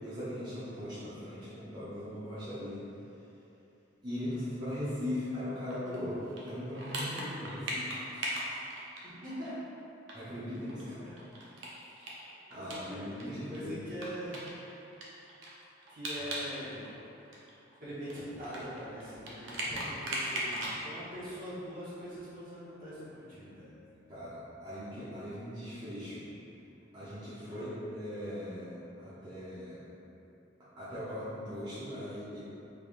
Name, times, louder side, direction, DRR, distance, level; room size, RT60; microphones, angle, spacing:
voice 1, 0.0-2.8 4.0-8.3 10.1-11.0 12.5-13.7 16.2-16.3 23.3-23.7 24.1-26.3 26.9-29.8 30.8-32.4, left 1 dB, 25° right, -13 dB, 0.7 m, -39 dB
sound 1, 5.7-9.5 9.8-9.9 10.1-10.2 10.5-13.2 13.5-13.6 14.0-16.5 16.8-20.8, right 1 dB, 75° right, 0.6 m, -38 dB
voice 2, 9.0-9.6 11.0-11.2 12.5-14.4 15.9-16.9 17.8-23.6 27.5-27.7, equal, 45° right, -10 dB, 1.1 m, -43 dB
3.6 x 3.4 x 2.5 m, 2.9 s
head